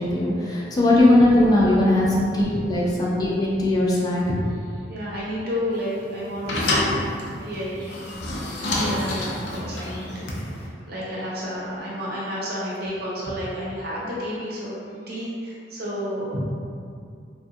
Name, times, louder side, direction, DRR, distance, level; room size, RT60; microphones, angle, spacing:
voice 1, 0.0-4.2, left 1 dB, 20° left, -5 dB, 0.3 m, -19 dB
voice 2, 4.8-6.6 7.4-8.0 8.6-14.8 15.1-16.5, equal, 60° right, -6 dB, 0.7 m, -31 dB
sound 1, 5.7-10.7, left 1 dB, 80° left, 0.4 m, -28 dB
2.7 x 2.2 x 2.6 m, 2.4 s
head